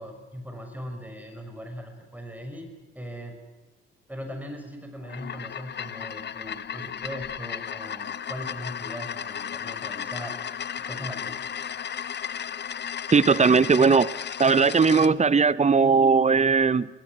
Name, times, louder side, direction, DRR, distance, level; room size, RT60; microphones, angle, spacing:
voice 1, 0.0-2.7 2.9-3.3 4.1-10.4 10.9-11.3, equal, 5° right, 4 dB, 5.5 m, -39 dB
sound 1, 5.0-15.1, left 8 dB, 35° left, 0.8 m, -34 dB
voice 2, 13.1-14.1 14.4-16.9, right 5 dB, 20° right, 20 dB, 0.8 m, -19 dB
24.5 x 21.0 x 6.3 m, 1.2 s
figure-of-eight pair, 50°, 32 cm